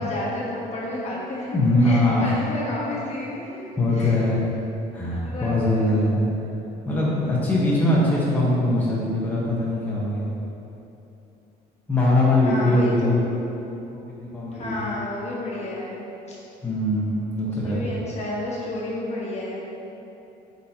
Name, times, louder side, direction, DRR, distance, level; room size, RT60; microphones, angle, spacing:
voice 1, 0.0-4.2 5.2-6.0 12.4-13.2 14.5-16.4 17.4-19.6, left 1 dB, 40° left, -5 dB, 1.4 m, -31 dB
voice 2, 1.5-2.4 3.8-4.4 4.9-6.3 6.8-10.3 11.9-13.2 13.9-14.7 16.6-17.8, left 1 dB, 10° left, -7 dB, 1.1 m, -21 dB
8.2 x 4.0 x 2.9 m, 2.9 s
cardioid pair, 110°, 17 cm